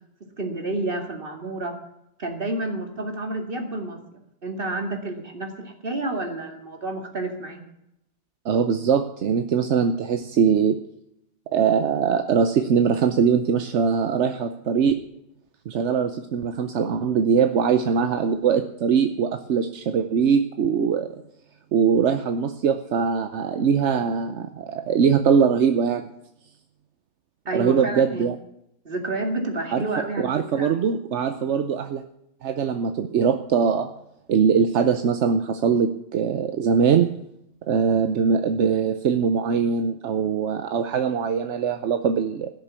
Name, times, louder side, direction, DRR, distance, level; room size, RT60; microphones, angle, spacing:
voice 1, 0.4-1.7 2.2-4.0 4.4-7.6 27.5-28.2 28.8-30.8, right 2 dB, 50° right, 3 dB, 2.5 m, -29 dB
voice 2, 8.4-10.8 11.5-15.0 15.7-21.2 21.7-26.1 27.5-28.3 29.7-29.8 30.2-32.0 32.4-33.9 34.3-37.1 37.7-42.5, right 6 dB, 80° right, 8 dB, 1.1 m, -22 dB
16.5 x 6.8 x 8.2 m, 0.81 s
omnidirectional pair, 1.2 m